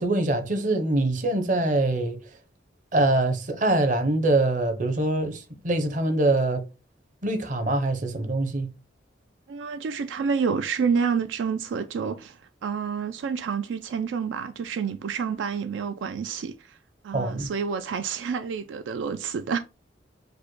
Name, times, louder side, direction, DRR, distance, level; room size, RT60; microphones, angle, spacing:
voice 1, 0.0-2.2 2.9-6.6 7.2-8.7 17.1-17.5, right 2 dB, 45° right, 0.7 m, -24 dB
voice 2, 9.5-16.8 17.0-19.6, right 6 dB, 80° right, 0.3 m, -29 dB
4.9 x 2.1 x 4.5 m
head